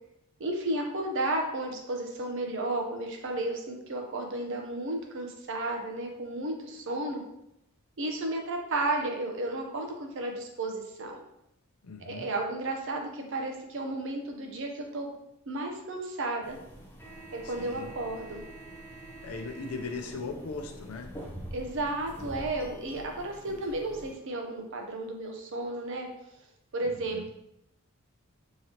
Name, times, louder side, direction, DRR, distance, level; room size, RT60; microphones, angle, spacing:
voice 1, 0.4-7.2 8.0-11.2 12.1-15.1 15.5-16.6 17.4-18.4 21.5-26.1 26.7-27.3, right 2 dB, 60° right, 2 dB, 0.6 m, -33 dB
voice 2, 11.8-12.3 17.4-17.9 19.2-21.1 26.8-27.3, left 4 dB, 85° left, 3 dB, 0.6 m, -39 dB
sound 1, 16.4-24.1, right 1 dB, 10° left, 0.5 m, -45 dB
3.7 x 3.1 x 2.8 m, 0.82 s
head